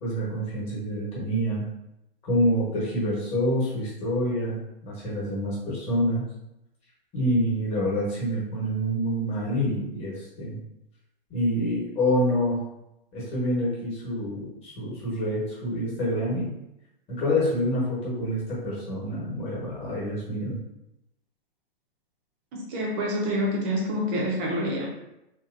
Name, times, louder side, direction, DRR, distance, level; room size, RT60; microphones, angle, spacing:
voice 1, 0.0-1.6 2.2-6.2 7.1-10.6 11.3-12.6 13.1-16.6 17.1-20.6, equal, 20° left, -6 dB, 1.1 m, -27 dB
voice 2, 22.5-24.9, equal, 20° right, -2 dB, 0.5 m, -27 dB
2.9 x 2.8 x 2.4 m, 0.87 s
hypercardioid pair, 145°, 30 cm